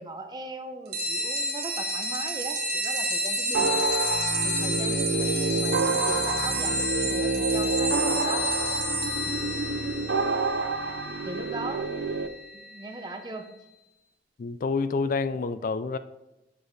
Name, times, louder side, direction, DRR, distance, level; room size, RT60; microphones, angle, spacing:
voice 1, 0.0-3.7 4.4-8.5 11.2-11.9 12.5-13.5, right 2 dB, 25° right, 6 dB, 0.7 m, -39 dB
sound 1, 0.9-13.0, left 1 dB, 60° right, 1.3 m, -30 dB
sound 2, 3.5-12.3, right 4 dB, 85° right, 0.6 m, -28 dB
voice 2, 14.4-16.0, left 4 dB, 50° left, 13 dB, 0.4 m, -28 dB
7.1 x 6.5 x 3.2 m, 0.95 s
head